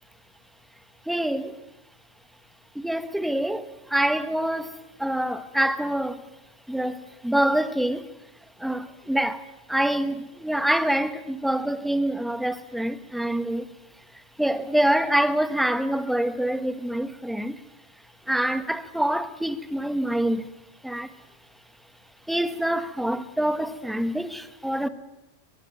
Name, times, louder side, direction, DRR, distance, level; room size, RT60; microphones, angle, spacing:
voice 1, 1.1-1.5 2.7-6.2 6.7-8.1 8.6-9.4 9.7-13.7 14.4-17.6 18.3-20.5 20.8-21.1 22.3-24.9, right 1 dB, ahead, 1.3 m, -26 dB
22.5 x 22.0 x 9.2 m
omnidirectional pair, 1.2 m